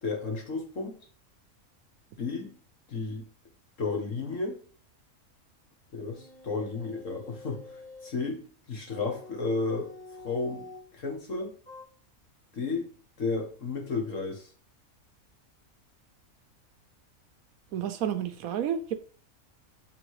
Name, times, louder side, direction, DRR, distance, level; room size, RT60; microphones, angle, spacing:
voice 1, 0.0-1.0 2.2-2.5 2.9-3.2 3.8-4.6 5.9-9.9 10.2-10.7 10.9-11.5 12.5-12.9 13.2-14.5, left 4 dB, 60° left, 2 dB, 1.9 m, -32 dB
sound 1, 6.1-8.2 8.9-10.9 11.7-11.8, left 3 dB, 30° left, 3.9 m, -47 dB
voice 2, 17.7-19.0, right 9 dB, 75° right, 11 dB, 1.1 m, -30 dB
7.0 x 3.9 x 4.8 m, 0.41 s
omnidirectional pair, 1.5 m